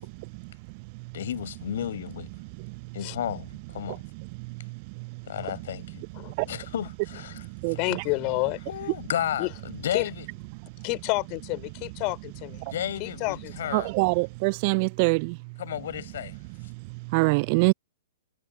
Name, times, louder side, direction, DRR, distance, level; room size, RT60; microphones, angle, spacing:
voice 1, 1.1-2.3 2.9-4.0 5.3-6.0 6.4-7.8 8.7-10.3 12.7-13.9 15.6-16.3, left 11 dB, 60° left, 5.7 m, -33 dB
voice 2, 7.8-8.6 9.4-9.5 9.9-10.1 10.8-12.6 13.0-13.7, left 29 dB, 35° left, 5.5 m, -29 dB
voice 3, 13.7-15.3 17.1-17.7, right 31 dB, 40° right, 0.3 m, -23 dB
figure-of-eight pair, 110°, 0 cm